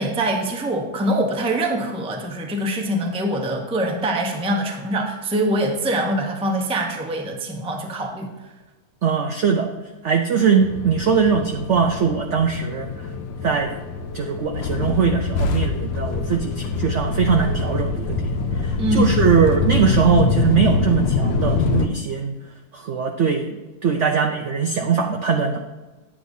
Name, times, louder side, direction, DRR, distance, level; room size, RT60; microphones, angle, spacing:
voice 1, 0.0-8.3 18.8-19.2, right 1 dB, 10° right, 1 dB, 0.4 m, -24 dB
voice 2, 9.0-9.7 10.0-12.9 13.4-13.7 14.1-22.4 22.7-25.6, right 6 dB, 75° right, 3 dB, 0.6 m, -21 dB
sound 1, 10.6-21.9, left 4 dB, 90° left, 1.3 m, -24 dB
9.9 x 7.5 x 2.7 m, 1.1 s
omnidirectional pair, 1.9 m